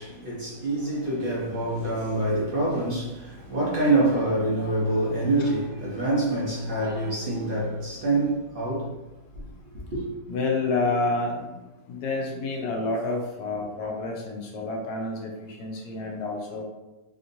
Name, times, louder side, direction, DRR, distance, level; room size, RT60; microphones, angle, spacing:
voice 1, 0.0-8.9 9.9-10.0, right 2 dB, 40° right, 1.0 m, -26 dB
voice 2, 10.3-16.6, left 3 dB, 90° left, 1.3 m, -29 dB
3.5 x 2.8 x 2.6 m
omnidirectional pair, 1.6 m